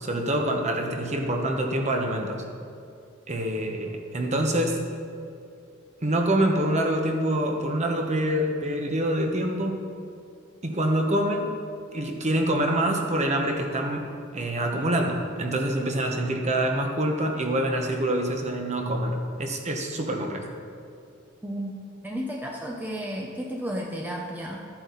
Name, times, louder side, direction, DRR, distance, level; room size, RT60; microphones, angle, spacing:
voice 1, 0.0-2.4 3.3-4.8 6.0-9.9 10.6-11.5 11.9-14.0 14.3-20.5, right 1 dB, 35° right, 2 dB, 1.2 m, -26 dB
voice 2, 21.4-24.6, equal, 10° right, -1 dB, 0.8 m, -33 dB
13.5 x 9.0 x 4.1 m, 2.4 s
head